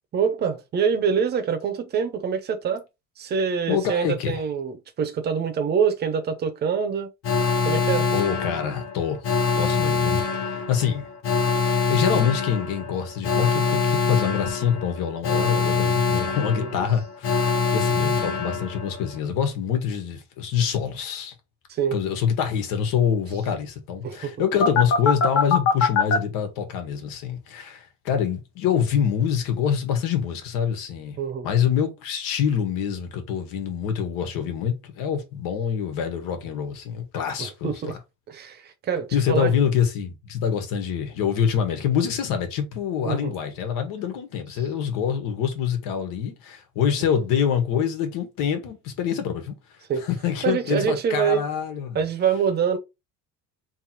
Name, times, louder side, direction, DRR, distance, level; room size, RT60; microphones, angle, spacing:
voice 1, 0.1-2.9 3.2-7.1 7.6-8.1 16.6-16.9 21.7-22.0 24.0-24.3 31.2-31.5 37.4-37.9 38.3-39.5 43.0-43.3 49.9-50.0 50.4-51.5 51.9-52.8, right 7 dB, 30° right, 0.7 m, -25 dB
voice 2, 3.7-4.4 8.1-9.2 9.5-11.1 11.6-21.3 21.9-31.2 31.4-37.9 39.1-49.5 50.0-52.0, left 8 dB, 80° left, 1.4 m, -25 dB
Alarm, 7.2-19.1 24.6-26.2, left 5 dB, 45° left, 0.9 m, -24 dB
3.4 x 3.0 x 4.4 m
cardioid pair, 175°, 33 cm